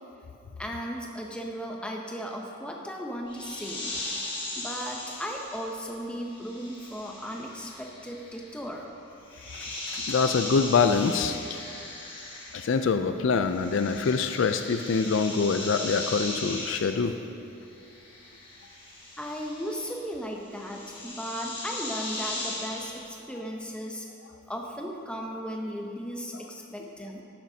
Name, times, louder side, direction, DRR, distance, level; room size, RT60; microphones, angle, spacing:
voice 1, 0.6-3.9 4.5-8.9 19.2-24.1 24.5-27.2, equal, 5° left, 0 dB, 0.7 m, -36 dB
sound 1, 3.3-13.0 13.2-23.0, left 2 dB, 25° left, 1.5 m, -38 dB
voice 2, 9.6-11.6 12.5-17.2, left 5 dB, 65° left, 8 dB, 0.4 m, -25 dB
13.5 x 10.5 x 2.8 m, 2.8 s
head